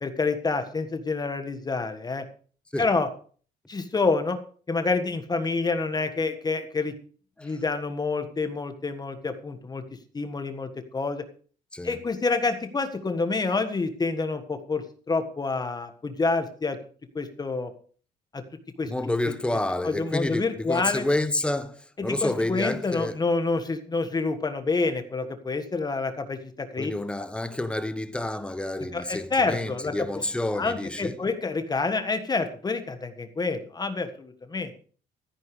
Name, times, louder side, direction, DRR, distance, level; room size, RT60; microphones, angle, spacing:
voice 1, 0.0-2.2 2.8-3.1 3.7-4.4 4.7-6.9 7.4-9.8 10.1-11.2 11.8-16.8 17.1-17.7 18.3-18.4 18.8-18.9 19.8-21.0 22.0-26.9 28.9-30.1 30.5-34.7, left 3 dB, 25° left, 1.6 m, -28 dB
voice 2, 18.9-23.2 26.8-31.2, left 1 dB, 5° left, 1.2 m, -29 dB
13.5 x 10.5 x 4.9 m
cardioid pair, 110°, 17 cm